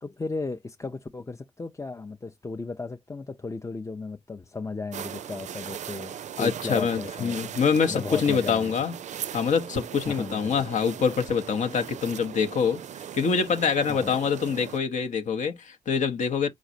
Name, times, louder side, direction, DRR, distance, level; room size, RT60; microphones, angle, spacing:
voice 1, 0.0-7.3 7.8-8.8 10.1-10.7 13.9-14.2, left 3 dB, 20° left, 0.5 m, -35 dB
sound 1, 4.9-14.8, right 9 dB, 60° right, 0.4 m, -39 dB
voice 2, 6.4-8.9 9.3-12.8 13.1-16.5, left 6 dB, 65° left, 0.8 m, -25 dB
5.0 x 3.9 x 2.6 m
supercardioid pair, 40°, 14 cm